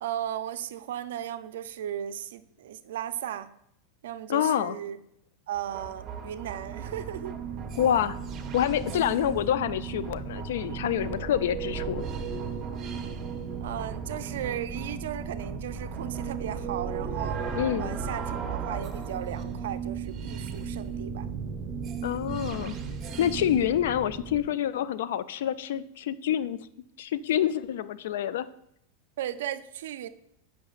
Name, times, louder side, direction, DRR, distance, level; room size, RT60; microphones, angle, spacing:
voice 1, 0.0-3.5 4.0-5.0 5.5-7.4 11.1-11.3 13.6-17.4 17.8-21.3 29.2-30.1, right 11 dB, 75° right, 12 dB, 0.4 m, -36 dB
voice 2, 4.3-4.8 7.8-8.2 8.5-12.0 17.5-18.0 22.0-22.7 23.2-26.6 27.0-28.5, left 10 dB, 75° left, 16 dB, 0.3 m, -27 dB
sound 1, 5.5-24.4, right 6 dB, 30° right, 0.8 m, -35 dB
8.7 x 5.2 x 2.4 m, 0.76 s
supercardioid pair, 125°, 0 cm